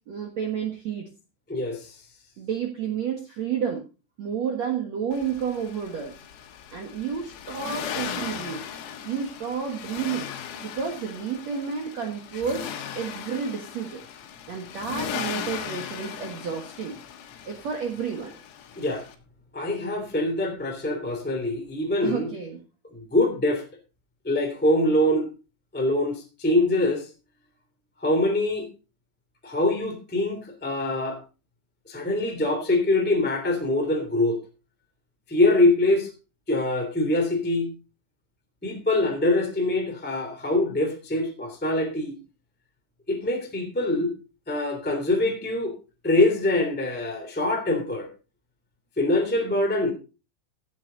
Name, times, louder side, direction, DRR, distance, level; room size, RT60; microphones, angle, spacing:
voice 1, 0.1-1.1 2.4-3.8 4.2-6.2 6.7-8.6 9.0-10.3 10.6-12.7 12.9-14.0 14.5-17.0 17.4-18.3 22.0-22.6, right 7 dB, 80° right, 1.5 m, -30 dB
voice 2, 1.5-1.9 18.7-19.0 19.5-22.3 22.9-23.6 24.2-25.3 25.7-27.1 28.0-28.7 29.4-31.2 31.8-34.4 35.3-36.1 36.5-37.7 38.6-42.2 43.1-44.1 44.5-45.7 46.0-48.1 48.9-49.9, left 1 dB, 5° left, 1.5 m, -24 dB
Accelerating revving vroom, 5.1-19.2, left 8 dB, 90° left, 4.5 m, -38 dB
16.0 x 8.1 x 4.0 m
omnidirectional pair, 5.9 m